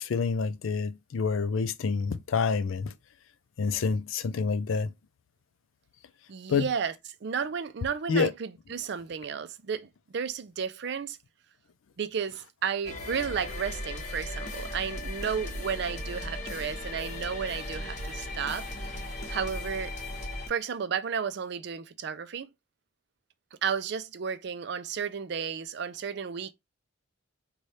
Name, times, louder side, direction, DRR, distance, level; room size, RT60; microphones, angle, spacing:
voice 1, 0.0-2.9 3.6-4.9 6.5-6.7 8.1-8.3, left 5 dB, 80° left, 0.4 m, -27 dB
voice 2, 6.3-6.9 7.2-11.2 12.0-18.9 19.3-19.9 20.5-22.5 23.6-26.5, right 6 dB, 55° right, 0.4 m, -33 dB
sound 1, 12.8-20.5, left 1 dB, 35° left, 0.9 m, -37 dB
3.2 x 2.3 x 4.1 m
head